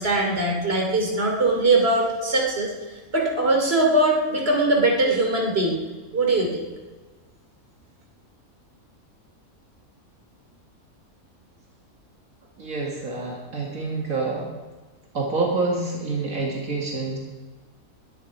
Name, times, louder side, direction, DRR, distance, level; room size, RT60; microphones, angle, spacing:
voice 1, 0.0-5.8 6.1-6.6, right 2 dB, 45° right, 0 dB, 3.1 m, -21 dB
voice 2, 12.6-14.4 15.1-17.2, right 3 dB, 75° right, -2 dB, 2.5 m, -27 dB
21.0 x 10.0 x 4.7 m, 1.3 s
omnidirectional pair, 1.5 m